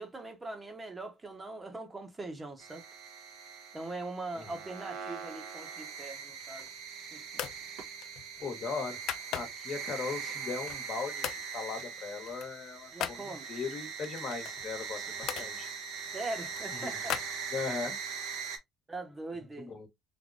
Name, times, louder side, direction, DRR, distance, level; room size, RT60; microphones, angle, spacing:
voice 1, 0.0-2.8 3.7-6.7 7.1-7.4 12.9-13.5 16.1-17.1 18.9-19.7, right 2 dB, 20° right, 1.1 m, -41 dB
sound 1, 2.6-18.6, right 6 dB, 80° right, 1.2 m, -41 dB
sound 2, 6.3-6.9 7.3-7.6 8.0-9.8 10.3-10.9 11.2-11.5 11.8-13.2 14.0-15.5 16.1-17.9, left 11 dB, 65° left, 0.3 m, -40 dB
voice 2, 8.4-15.7 16.7-16.9 17.5-18.0 19.6-19.9, left 5 dB, 50° left, 1.2 m, -38 dB
3.5 x 2.9 x 2.5 m
cardioid pair, 110°, 0 cm